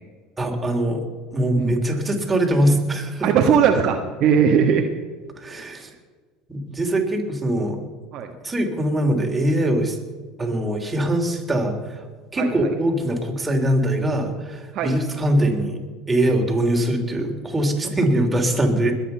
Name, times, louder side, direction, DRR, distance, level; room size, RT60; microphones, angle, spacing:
voice 1, 0.4-3.3 5.4-5.9 6.5-7.8 8.4-10.0 10.4-12.1 12.3-15.8 16.1-18.9, right 1 dB, 15° right, 2 dB, 3.4 m, -22 dB
voice 2, 3.2-4.9 8.1-8.3 12.4-12.7 14.7-15.0, right 7 dB, 55° right, 4 dB, 1.4 m, -19 dB
21.0 x 9.0 x 5.7 m, 1.5 s
hypercardioid pair, 90°, 0 cm